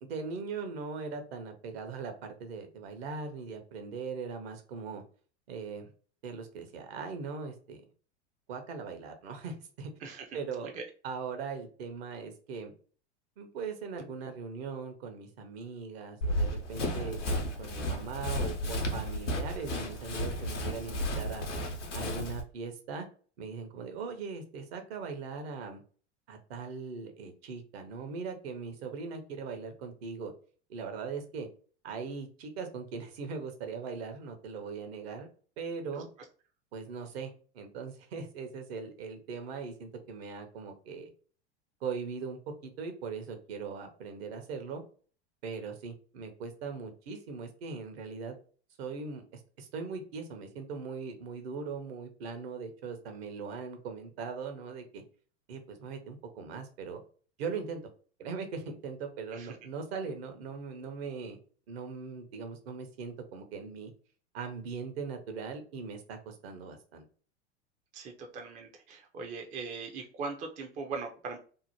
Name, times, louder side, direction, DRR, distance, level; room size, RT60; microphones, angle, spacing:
voice 1, 0.0-5.0 5.5-5.9 6.2-7.8 8.5-9.9 10.3-10.7 11.0-12.7 13.4-21.5 21.9-23.1 23.4-25.8 26.3-30.3 30.7-31.5 31.8-35.3 35.6-36.1 36.7-41.1 41.8-44.8 45.4-48.4 48.8-55.0 55.5-57.0 57.4-57.8 58.2-61.4 61.7-63.9 64.3-67.0, right 5 dB, 60° right, 6 dB, 0.8 m, -40 dB
voice 2, 10.0-10.9 36.0-36.1 59.3-59.6 67.9-71.4, right 4 dB, 20° right, 3 dB, 0.4 m, -40 dB
Run, 16.2-22.4, equal, 90° left, 0.7 m, -33 dB
2.8 x 2.0 x 2.8 m, 0.41 s
figure-of-eight pair, 85°, 35 cm